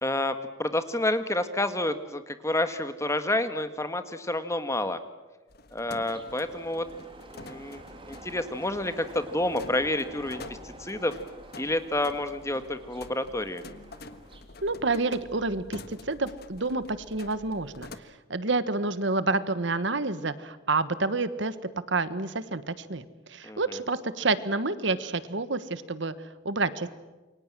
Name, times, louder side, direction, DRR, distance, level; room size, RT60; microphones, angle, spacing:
voice 1, 0.0-5.0 5.7-6.9 7.3-11.2 11.6-13.6 23.4-23.8, left 1 dB, 15° left, 10 dB, 1.6 m, -29 dB
sound 1, 5.5-18.0, left 2 dB, 55° left, 1.5 m, -47 dB
sound 2, 5.9-14.4, right 1 dB, 25° right, 3.4 m, -48 dB
voice 2, 14.6-17.9 18.3-21.5 21.9-23.0 23.3-26.1 26.4-26.9, right 3 dB, 65° right, 14 dB, 1.4 m, -28 dB
28.5 x 23.5 x 7.6 m, 1.2 s
head